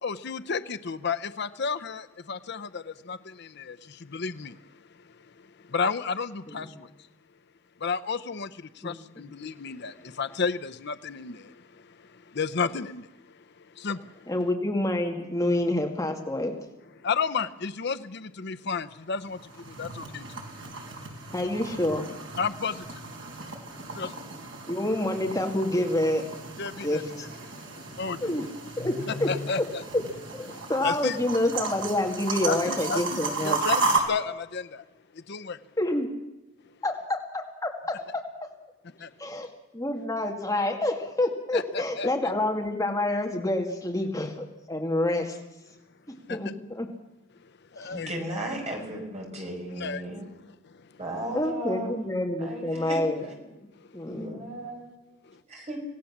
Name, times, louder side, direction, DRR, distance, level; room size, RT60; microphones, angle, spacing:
voice 1, 0.0-4.6 4.9-5.0 5.4-6.9 7.8-14.3 17.0-20.4 22.4-23.0 24.0-24.1 26.6-28.5 29.2-29.8 30.5-31.2 32.5-34.8 35.1-35.6 39.0-39.1 41.5-42.1 46.3-46.4 47.7-48.2 49.7-50.7 53.8-54.2 55.3-55.4, left 5 dB, 55° left, 11 dB, 0.7 m, -33 dB
voice 2, 8.8-9.2 14.3-16.5 21.3-22.1 24.7-26.3 26.8-27.3 28.2-28.5 28.8-29.3 29.9-30.0 30.3-33.6 35.8-36.1 36.8-38.5 39.2-39.5 39.7-45.4 46.1-46.9 47.8-48.1 51.3-53.5 53.9-54.6, left 1 dB, 15° left, 3 dB, 2.0 m, -28 dB
sound 1, 19.2-34.0, right 3 dB, 70° right, 4.0 m, -34 dB
voice 3, 47.9-50.3 51.0-52.0 52.4-53.0 54.1-54.9 55.5-55.8, right 1 dB, 35° right, 1 dB, 5.3 m, -35 dB
26.0 x 17.5 x 7.3 m, 1.0 s
head